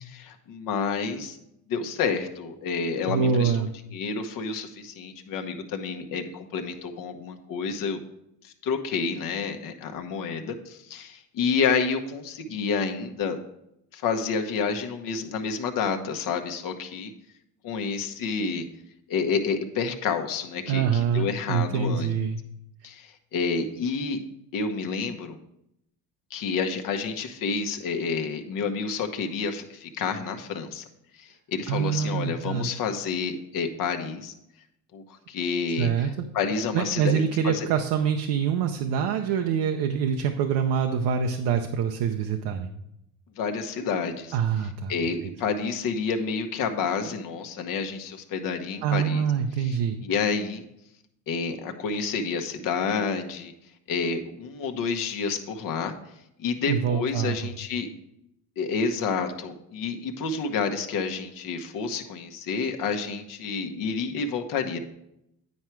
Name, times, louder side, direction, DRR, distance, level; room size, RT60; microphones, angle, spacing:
voice 1, 0.0-1.4 1.7-3.6 3.9-8.0 8.4-13.4 13.9-17.1 17.6-18.6 19.1-22.1 22.8-24.2 24.5-25.4 26.3-30.8 31.2-34.3 34.9-37.7 43.4-44.4 44.9-49.3 49.6-50.6 51.3-53.5 53.9-55.9 56.4-57.9 58.6-64.8, left 5 dB, 50° left, 5 dB, 1.0 m, -29 dB
voice 2, 3.1-3.7 20.7-22.4 31.7-32.7 35.8-36.1 36.7-42.7 44.3-44.9 48.8-50.0 56.7-57.5, right 7 dB, 65° right, 5 dB, 0.8 m, -25 dB
9.6 x 4.7 x 4.5 m, 0.81 s
cardioid pair, 120°, 41 cm